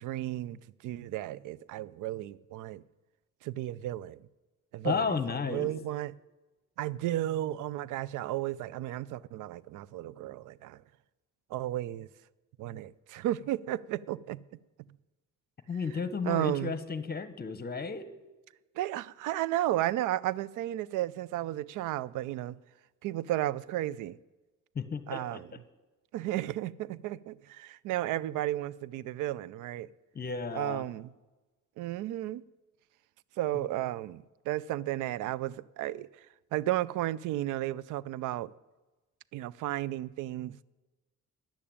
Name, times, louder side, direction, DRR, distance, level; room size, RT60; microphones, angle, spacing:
voice 1, 0.0-2.8 3.4-4.2 4.7-6.1 6.8-10.8 11.5-12.1 12.6-14.4 16.2-16.7 18.8-22.6 23.0-24.2 25.1-25.5 26.1-29.9 30.5-31.1 31.8-32.4 33.4-36.1 36.5-38.5 39.3-40.6, right 14 dB, 85° right, 0.5 m, -33 dB
voice 2, 4.8-5.7 15.7-18.1 24.7-25.4 30.1-30.8, left 5 dB, 30° left, 1.1 m, -33 dB
10.5 x 8.6 x 8.6 m
cardioid pair, 90°, 30 cm